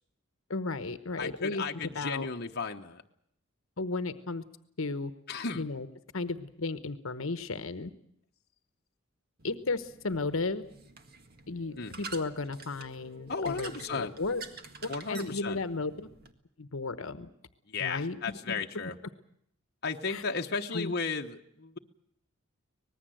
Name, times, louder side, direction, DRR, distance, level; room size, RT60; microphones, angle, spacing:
voice 1, 0.5-2.3 3.8-4.4 4.8-5.1 5.5-5.9 6.1-7.9 9.4-10.6 11.5-14.4 14.8-16.1 16.6-17.3 17.8-18.6 20.1-20.2 20.7-20.9, left 3 dB, 70° left, 11 dB, 1.1 m, -34 dB
voice 2, 1.2-3.0 5.3-5.6 11.8-12.1 13.3-14.1 14.9-15.6 17.7-19.0 19.8-21.8, left 4 dB, 50° left, 2 dB, 1.1 m, -34 dB
sound 1, 9.4-16.3, right 4 dB, 45° right, 1.7 m, -48 dB
25.0 x 19.5 x 7.8 m, 0.70 s
head